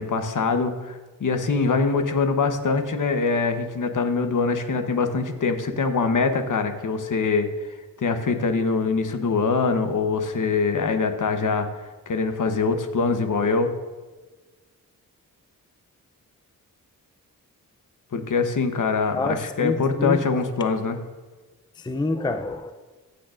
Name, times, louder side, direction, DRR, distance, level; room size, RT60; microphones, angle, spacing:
voice 1, 0.0-7.5 8.0-11.7 12.1-13.7 18.1-21.0, left 4 dB, 60° left, 7 dB, 1.0 m, -23 dB
voice 2, 19.1-20.2 20.6-20.7 21.8-22.7, left 2 dB, 15° left, 8 dB, 0.4 m, -27 dB
14.5 x 6.5 x 2.5 m, 1.3 s
cardioid pair, 60°, 36 cm